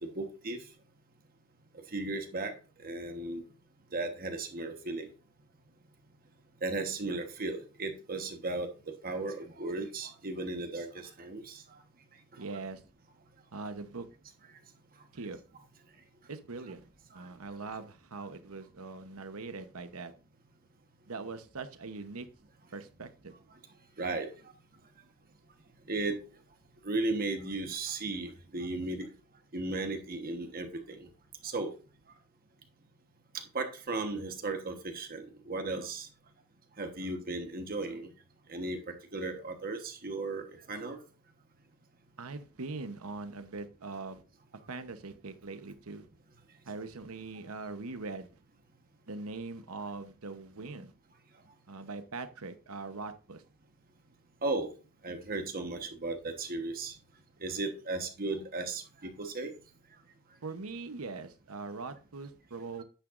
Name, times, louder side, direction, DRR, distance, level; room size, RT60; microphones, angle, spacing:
voice 1, 0.0-0.6 1.9-2.5 2.8-3.4 3.9-5.1 6.6-11.6 24.0-24.3 25.9-26.2 26.8-29.1 29.5-31.1 31.4-31.7 33.5-36.1 36.8-38.1 38.5-41.0 54.4-54.7 55.0-56.9 57.4-59.5, right 2 dB, 40° right, 1.2 m, -35 dB
voice 2, 12.4-12.8 13.5-14.1 15.1-15.4 16.3-16.8 17.1-20.1 21.1-22.3 22.7-23.3 42.2-44.2 44.7-46.0 46.6-48.3 49.1-50.9 51.7-53.4 60.4-62.8, right 3 dB, 70° right, 1.0 m, -41 dB
10.0 x 9.1 x 2.6 m
head